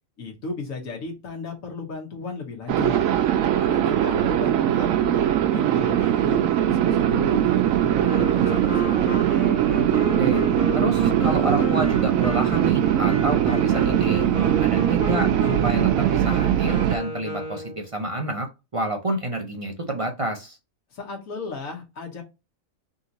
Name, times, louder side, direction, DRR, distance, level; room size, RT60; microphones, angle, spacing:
voice 1, 0.2-3.0 3.6-5.3 5.5-9.3 20.9-22.2, left 4 dB, 90° left, 1 dB, 1.6 m, -35 dB
sound 1, 2.7-17.0, right 11 dB, 85° right, 1.0 m, -21 dB
Wind instrument woodwind instrument, 8.0-17.9, left 3 dB, 70° left, 1.5 m, -33 dB
voice 2, 10.8-14.3 14.6-15.3 15.6-20.6, right 1 dB, 40° right, 3 dB, 0.5 m, -29 dB
3.7 x 2.9 x 3.9 m, 0.25 s
omnidirectional pair, 1.4 m